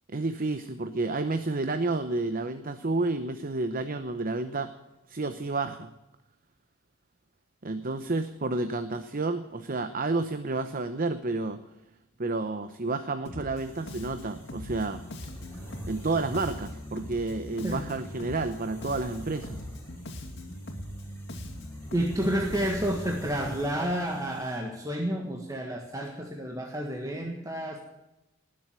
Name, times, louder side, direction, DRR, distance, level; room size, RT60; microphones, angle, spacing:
voice 1, 0.1-4.7 5.1-5.9 7.6-11.6 12.2-15.0 15.9-19.6, right 3 dB, 40° right, 10 dB, 0.8 m, -30 dB
Bass guitar, 13.2-13.6 13.9-18.5 18.8-23.1, equal, 55° left, 2.5 m, -41 dB
sound 1, 13.6-24.6, left 1 dB, 10° left, 6.6 m, -46 dB
voice 2, 21.9-27.8, right 1 dB, 15° right, 1 dB, 1.6 m, -30 dB
20.0 x 7.6 x 8.9 m, 0.96 s
head